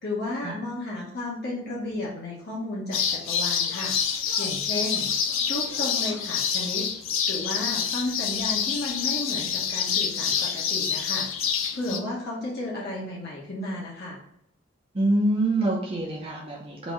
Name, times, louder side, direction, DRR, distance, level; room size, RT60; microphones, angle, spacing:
voice 1, 0.0-3.9 4.4-5.1 5.5-6.9 7.3-11.3 11.7-14.2, left 1 dB, 55° left, -5 dB, 1.0 m, -33 dB
sound 1, 2.9-12.0, left 7 dB, 75° left, 0.5 m, -27 dB
voice 2, 14.9-16.9, right 1 dB, 30° right, -2 dB, 0.7 m, -25 dB
4.0 x 2.7 x 4.7 m, 0.76 s
head